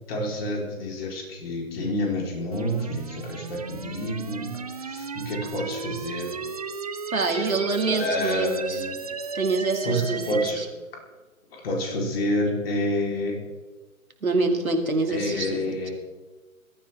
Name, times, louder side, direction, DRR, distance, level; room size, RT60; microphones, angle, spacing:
voice 1, 0.1-4.5 4.8-6.4 7.3-7.5 7.9-9.0 9.8-10.7 11.5-13.4 15.1-15.9, left 1 dB, 45° left, 0 dB, 3.9 m, -29 dB
sound 1, 2.5-10.5, right 5 dB, 30° right, 0.4 m, -34 dB
voice 2, 7.1-8.8 9.3-10.6 14.2-15.8, right 3 dB, 75° right, 3 dB, 2.7 m, -26 dB
21.0 x 13.5 x 3.6 m, 1.3 s
figure-of-eight pair, 130°, 42 cm